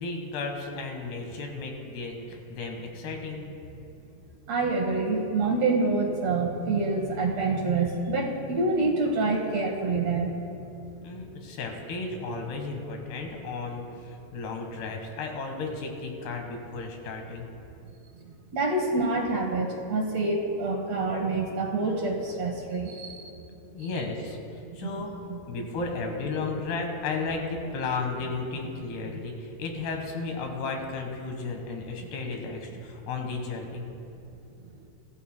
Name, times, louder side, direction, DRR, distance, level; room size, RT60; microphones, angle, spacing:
voice 1, 0.0-3.5 11.0-17.5 23.7-24.4 24.8-25.1 25.5-33.9, left 4 dB, 80° left, 2 dB, 3.5 m, -34 dB
voice 2, 4.5-10.4 18.5-23.3 24.8-25.4, right 3 dB, 70° right, 0 dB, 1.6 m, -27 dB
23.5 x 15.0 x 2.2 m, 2.7 s
omnidirectional pair, 4.6 m